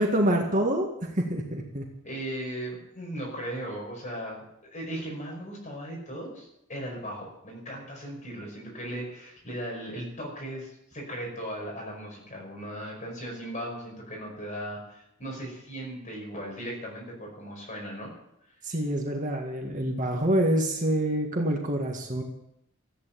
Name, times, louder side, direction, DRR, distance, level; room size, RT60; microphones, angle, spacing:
voice 1, 0.0-1.9 18.6-22.2, right 1 dB, 40° right, 1 dB, 1.9 m, -26 dB
voice 2, 2.0-18.1, right 1 dB, 40° left, -1 dB, 5.4 m, -37 dB
14.0 x 9.4 x 9.3 m, 0.80 s
head